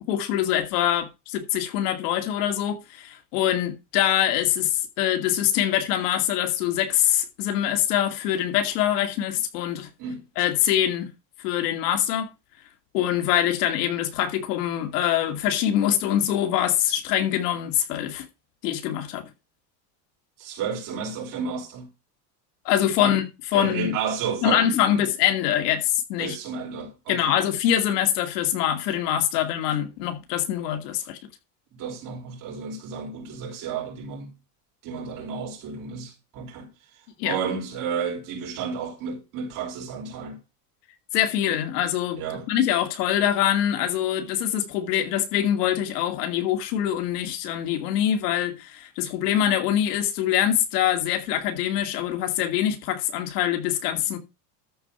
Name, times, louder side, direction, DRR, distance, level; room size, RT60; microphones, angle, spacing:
voice 1, 0.1-9.9 10.4-11.1 11.4-12.3 12.9-18.3 18.6-19.2 22.6-24.0 24.4-26.4 27.1-31.2 37.2-37.4 41.1-54.2, left 11 dB, 85° left, 2.5 m, -24 dB
voice 2, 20.4-21.9 23.0-23.1 23.5-25.1 26.2-27.3 31.7-34.3 34.8-36.7 37.2-40.4 42.2-42.5, right 6 dB, 45° right, 5.0 m, -32 dB
13.0 x 4.7 x 5.7 m
cardioid pair, 150°, 46 cm